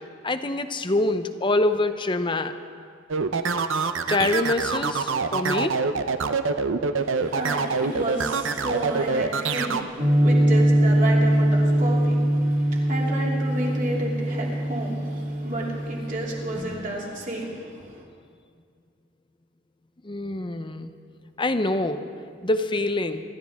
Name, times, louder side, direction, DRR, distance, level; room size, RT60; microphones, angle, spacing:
voice 1, 0.2-2.5 4.1-5.8 20.0-20.9 21.4-22.0 22.4-23.2, left 2 dB, 25° left, 10 dB, 0.7 m, -25 dB
sound 1, 3.1-9.8, right 4 dB, 70° right, 0.7 m, -25 dB
voice 2, 7.0-18.0, right 1 dB, 40° right, -3 dB, 3.1 m, -32 dB
sound 2, 10.0-16.8, right 1 dB, 25° right, 2.2 m, -22 dB
25.5 x 12.5 x 3.6 m, 2.2 s
head